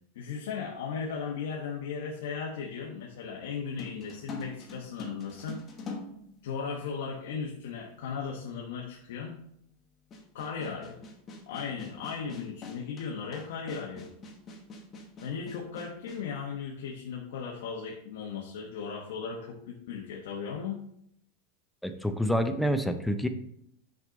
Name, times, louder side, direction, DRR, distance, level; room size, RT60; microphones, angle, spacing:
voice 1, 0.1-5.6 6.4-9.4 10.3-11.0 11.5-14.1 15.2-20.8, left 6 dB, 75° left, 0 dB, 1.0 m, -36 dB
sound 1, 3.8-7.0 7.9-8.0 10.1-16.3, left 3 dB, 25° left, 1.1 m, -44 dB
voice 2, 21.8-23.3, equal, ahead, 7 dB, 0.5 m, -27 dB
6.0 x 5.1 x 3.9 m, 0.72 s
supercardioid pair, 155°, 0 cm